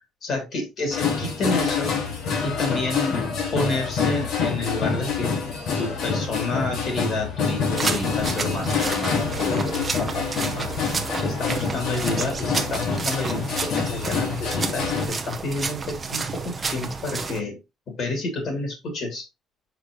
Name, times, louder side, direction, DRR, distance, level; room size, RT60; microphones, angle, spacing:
voice 1, 0.2-1.9 2.4-3.2 3.5-5.3 5.8-10.7 11.2-17.6 18.0-19.2, left 2 dB, 45° left, 2 dB, 3.0 m, -29 dB
sound 1, 0.9-15.1, left 5 dB, 60° left, 1.9 m, -26 dB
sound 2, 7.8-17.4, right 4 dB, 20° right, 0.8 m, -30 dB
6.1 x 5.0 x 3.1 m, 0.24 s
cardioid pair, 175°, 0 cm